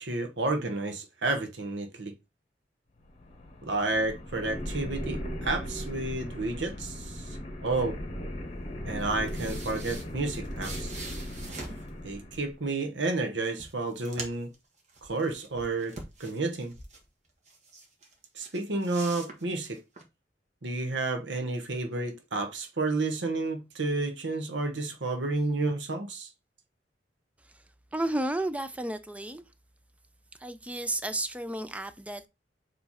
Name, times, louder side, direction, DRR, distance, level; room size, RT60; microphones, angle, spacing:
voice 1, 0.0-2.1 3.6-7.4 7.6-8.0 8.8-10.9 12.0-14.5 15.0-15.9 16.2-16.7 18.3-19.8 20.6-26.3, right 2 dB, 90° right, 1.0 m, -31 dB
sound 1, 3.0-12.6, equal, 35° left, 1.0 m, -38 dB
sound 2, 9.0-11.9 13.0-13.1 13.4-14.6 14.9-17.0 17.5-18.1 18.4-20.0, right 3 dB, 40° right, 1.4 m, -44 dB
voice 2, 27.9-29.4 30.4-32.3, right 1 dB, 10° right, 0.4 m, -32 dB
7.2 x 3.1 x 4.2 m
head